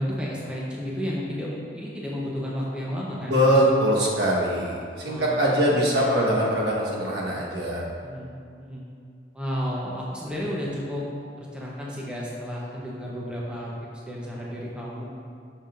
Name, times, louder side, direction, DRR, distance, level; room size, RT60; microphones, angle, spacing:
voice 1, 0.0-3.8 5.0-6.3 8.0-8.3 8.6-8.8 9.3-11.0 11.4-13.7 14.0-15.0, equal, 5° right, -5 dB, 0.8 m, -32 dB
voice 2, 3.3-4.8 5.0-7.8, equal, 70° right, -4 dB, 1.3 m, -22 dB
11.0 x 5.5 x 2.5 m, 2.3 s
head